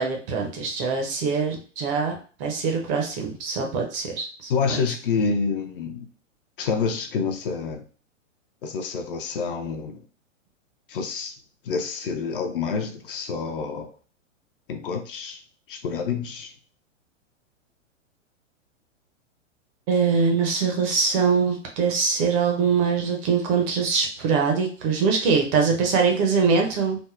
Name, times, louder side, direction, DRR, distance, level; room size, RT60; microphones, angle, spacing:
voice 1, 0.0-4.5 19.9-27.0, right 5 dB, 25° right, 2 dB, 0.5 m, -23 dB
voice 2, 4.5-6.1 6.6-7.8 8.6-10.0 10.9-11.3 11.6-13.9 14.7-15.4 15.7-16.5, left 5 dB, 45° left, 6 dB, 0.5 m, -28 dB
3.5 x 2.0 x 2.4 m, 0.39 s
figure-of-eight pair, 110°, 38 cm